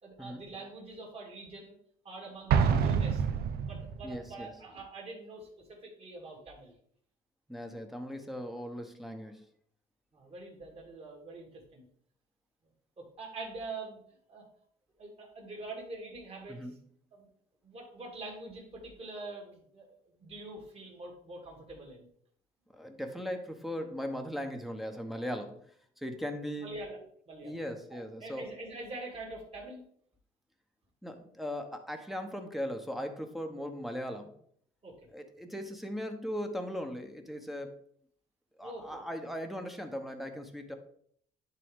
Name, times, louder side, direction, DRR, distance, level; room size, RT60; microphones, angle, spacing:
voice 1, 0.0-1.8 2.0-3.2 3.6-6.7 10.1-11.8 13.0-14.0 14.3-14.5 15.0-16.7 17.1-17.3 17.6-19.9 20.2-22.1 26.6-27.0 27.3-27.6 27.9-29.8 34.8-35.1 38.6-39.1, right 2 dB, 35° right, -1 dB, 2.7 m, -44 dB
Explosion, 2.5-4.2, right 6 dB, 65° right, 0.7 m, -27 dB
voice 2, 4.0-4.5 7.5-9.4 16.5-16.7 22.7-25.6 26.0-26.7 27.4-28.5 31.0-34.3 35.1-37.8 38.6-40.7, equal, ahead, 4 dB, 1.0 m, -38 dB
11.0 x 3.8 x 3.7 m, 0.64 s
cardioid pair, 110°, 17 cm